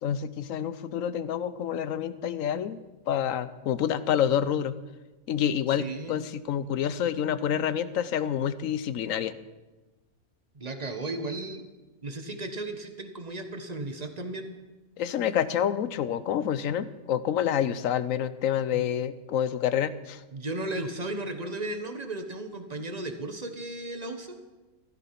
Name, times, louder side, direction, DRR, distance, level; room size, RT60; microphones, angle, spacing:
voice 1, 0.0-4.7 5.3-9.3 15.0-20.2, left 9 dB, 70° left, 15 dB, 1.1 m, -28 dB
voice 2, 5.8-6.2 10.5-11.6 12.0-14.5 18.7-18.8 20.3-24.4, right 2 dB, 30° right, 7 dB, 1.3 m, -35 dB
15.0 x 12.5 x 5.9 m, 1.1 s
omnidirectional pair, 1.5 m